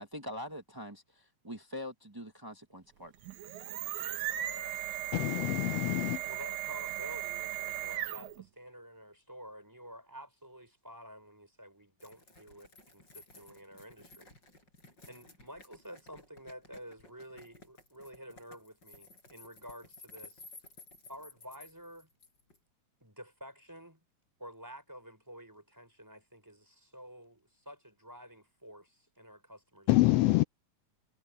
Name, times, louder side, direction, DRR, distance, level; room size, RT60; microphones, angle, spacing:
voice 1, 0.0-3.1, left 1 dB, 35° right, 0.3 m, -43 dB
sound 1, 3.1-8.4, right 13 dB, 75° right, 2.5 m, -37 dB
voice 2, 5.1-6.2 29.9-30.4, left 19 dB, 90° left, 1.4 m, -26 dB
voice 3, 6.2-14.3 15.1-20.4 21.1-22.1 23.0-24.0 24.4-30.1, equal, 5° right, 4.3 m, -50 dB
sound 2, 12.0-22.6, left 3 dB, 35° left, 8.0 m, -55 dB
omnidirectional pair, 3.4 m